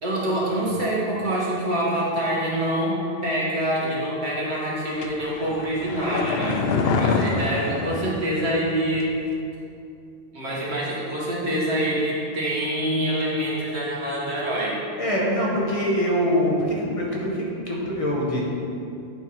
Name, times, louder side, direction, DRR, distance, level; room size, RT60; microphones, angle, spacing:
voice 1, 0.0-6.7 6.9-9.1 10.3-14.8, right 1 dB, 85° right, -6 dB, 1.8 m, -25 dB
sound 1, 5.0-8.7 9.0-9.1, left 4 dB, 70° left, 0.8 m, -26 dB
voice 2, 6.6-7.5 7.7-7.9 15.0-18.4, equal, 35° left, -5 dB, 1.3 m, -25 dB
8.9 x 4.4 x 4.8 m, 2.6 s
omnidirectional pair, 1.1 m